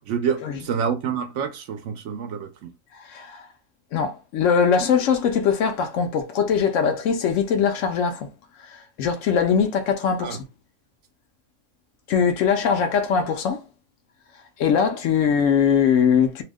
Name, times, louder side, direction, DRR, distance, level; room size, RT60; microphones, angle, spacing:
voice 1, 0.1-2.7 10.2-10.4, right 7 dB, 70° right, 0.9 m, -27 dB
voice 2, 2.9-3.5 3.9-8.3 8.6-10.4 12.1-13.6 14.6-16.4, left 7 dB, 70° left, 0.9 m, -21 dB
2.7 x 2.0 x 3.4 m
omnidirectional pair, 1.4 m